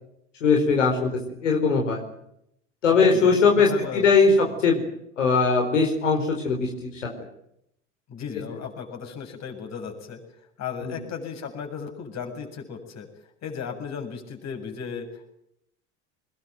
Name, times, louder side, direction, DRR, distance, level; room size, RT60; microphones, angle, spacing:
voice 1, 0.4-1.1 1.4-2.0 2.8-4.3 4.6-4.8 5.2-7.0 10.8-10.9, left 5 dB, 85° left, 1 dB, 4.5 m, -20 dB
voice 2, 2.9-4.1 4.4-4.6 8.1-10.2 10.6-13.1 13.4-15.3, left 6 dB, 45° left, 4 dB, 7.8 m, -35 dB
23.0 x 21.0 x 9.4 m, 0.77 s
hypercardioid pair, 75°, 36 cm